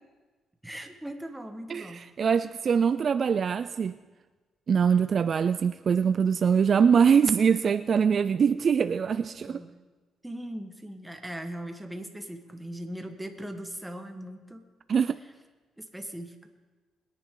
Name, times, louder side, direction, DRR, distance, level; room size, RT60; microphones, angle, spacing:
voice 1, 0.6-2.0 9.5-9.7 10.2-14.6 15.8-16.5, right 1 dB, 5° right, 1.5 m, -39 dB
voice 2, 1.7-3.9 4.7-9.6 14.9-15.2, right 6 dB, 50° right, 0.3 m, -23 dB
21.5 x 10.5 x 3.9 m
cardioid pair, 90°, 0 cm